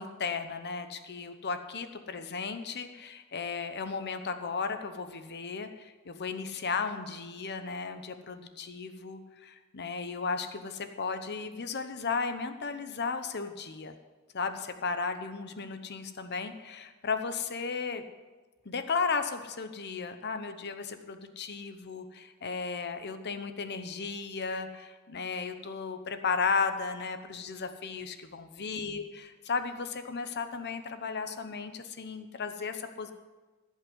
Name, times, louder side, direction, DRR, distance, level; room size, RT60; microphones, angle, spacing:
voice 1, 0.0-13.9 14.3-18.0 18.6-33.1, left 5 dB, 50° left, 9 dB, 0.8 m, -35 dB
14.5 x 5.5 x 8.0 m, 1.3 s
head